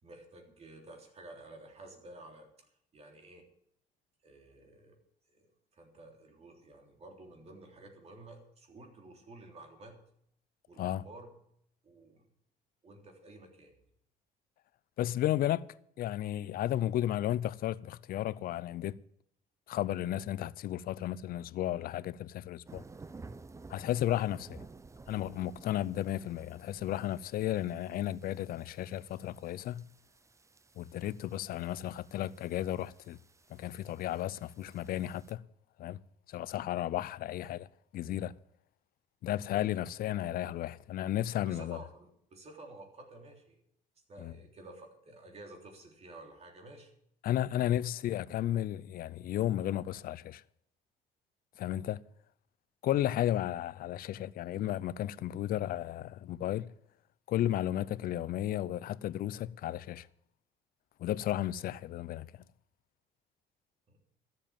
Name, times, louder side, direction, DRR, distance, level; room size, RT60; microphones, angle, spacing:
voice 1, 0.0-3.5 4.2-4.9 5.3-10.0 10.7-11.3 11.8-12.2 12.8-13.8 41.4-43.6 44.1-46.9 47.5-47.7 63.9-64.0, right 2 dB, 40° right, 3.4 m, -52 dB
voice 2, 15.0-19.0 19.7-22.8 23.7-24.6 25.1-29.9 30.8-33.2 33.5-35.4 35.8-36.0 36.3-37.7 37.9-38.3 39.2-41.8 44.2-44.3 47.2-50.4 51.6-52.0 52.8-56.7 57.3-60.1 61.0-62.3, left 12 dB, 60° left, 0.5 m, -33 dB
sound 1, 22.7-35.3, right 3 dB, 15° right, 0.6 m, -54 dB
13.0 x 7.8 x 8.8 m
cardioid pair, 110°, 17 cm